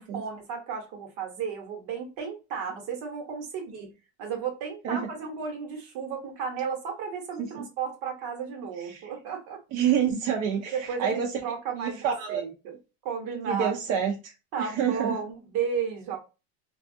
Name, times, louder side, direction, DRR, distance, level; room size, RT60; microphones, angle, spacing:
voice 1, 0.0-3.9 4.2-9.6 10.7-12.8 13.0-13.7 14.5-16.2, right 6 dB, 75° right, 1.1 m, -33 dB
voice 2, 9.7-11.3 11.8-12.5 13.5-15.2, right 8 dB, 55° right, 0.6 m, -28 dB
2.5 x 2.3 x 2.5 m
cardioid pair, 125°, 32 cm